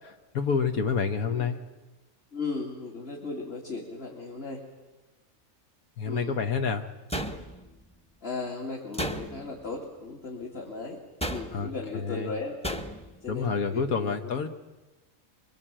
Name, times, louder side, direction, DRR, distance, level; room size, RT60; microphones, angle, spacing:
voice 1, 0.3-1.6 6.0-6.9 11.5-12.3 13.3-14.5, left 5 dB, 80° left, 7 dB, 1.6 m, -28 dB
voice 2, 2.3-4.6 6.1-6.4 8.2-11.0 11.3-12.6 13.2-14.5, left 3 dB, 45° left, -1 dB, 2.7 m, -36 dB
sound 1, 7.1-7.8 8.9-9.6 11.2-11.8 12.6-13.2, equal, 5° left, 1.0 m, -34 dB
24.0 x 23.0 x 8.9 m, 1.1 s
omnidirectional pair, 1.5 m